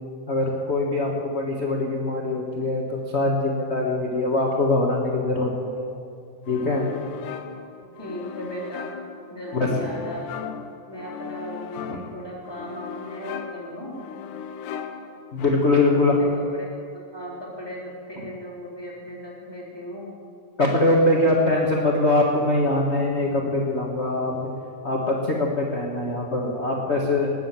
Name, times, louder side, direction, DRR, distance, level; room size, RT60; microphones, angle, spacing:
voice 1, 0.3-5.9 6.5-6.9 9.5-9.7 11.9-12.0 15.3-16.2 20.6-24.5 24.8-27.3, left 2 dB, 40° left, -2 dB, 1.0 m, -23 dB
sound 1, 6.5-16.0, left 7 dB, 80° left, 2.4 m, -38 dB
voice 2, 7.8-8.9 9.3-10.5 10.9-14.0 15.9-20.1 21.0-21.6, equal, 10° left, -5 dB, 3.2 m, -37 dB
19.5 x 9.2 x 7.4 m, 2.4 s
omnidirectional pair, 3.6 m